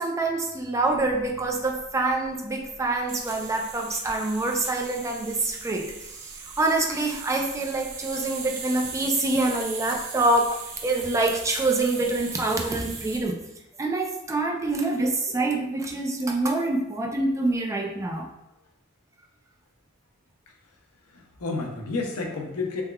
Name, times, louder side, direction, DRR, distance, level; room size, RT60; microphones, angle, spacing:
voice 1, 0.0-5.9 6.2-6.3 6.6-13.4 13.8-18.3, right 2 dB, 15° right, 1 dB, 0.3 m, -26 dB
sound 1, 0.9-13.2, right 5 dB, 80° right, 0.7 m, -39 dB
voice 2, 21.1-22.8, left 3 dB, 80° left, 1 dB, 0.6 m, -31 dB
3.5 x 3.3 x 2.2 m, 0.86 s
head